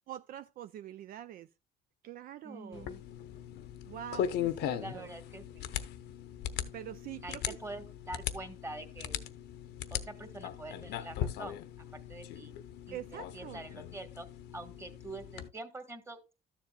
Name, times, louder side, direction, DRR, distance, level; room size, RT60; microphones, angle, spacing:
voice 1, 0.1-1.5 2.0-2.9 3.9-5.1 6.7-7.6 12.9-13.6, right 12 dB, 60° right, 0.4 m, -44 dB
voice 2, 2.4-3.0 4.8-5.7 7.2-9.2 9.9-12.6 12.9-14.3 14.5-16.3, right 2 dB, 15° right, 1.6 m, -45 dB
sound 1, 2.7-15.5, left 10 dB, 80° left, 0.8 m, -39 dB
13.0 x 7.3 x 2.3 m
cardioid pair, 110°, 17 cm